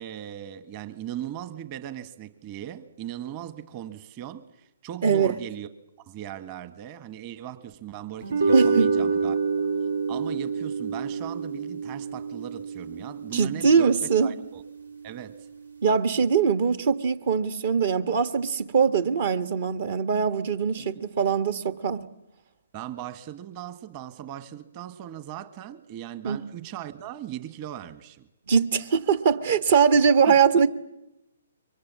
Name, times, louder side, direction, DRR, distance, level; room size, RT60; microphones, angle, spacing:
voice 1, 0.0-5.7 6.1-9.4 10.1-13.9 14.2-14.6 15.0-15.5 20.8-21.0 22.7-28.3 30.2-30.4, right 11 dB, 30° right, 1.4 m, -38 dB
voice 2, 5.0-5.3 8.5-8.9 13.3-14.3 15.8-22.0 26.2-26.4 28.5-30.7, right 6 dB, 55° right, 1.3 m, -22 dB
sound 1, 8.2-14.7, right 4 dB, 85° right, 2.3 m, -28 dB
27.5 x 23.5 x 7.4 m
figure-of-eight pair, 130°, 0 cm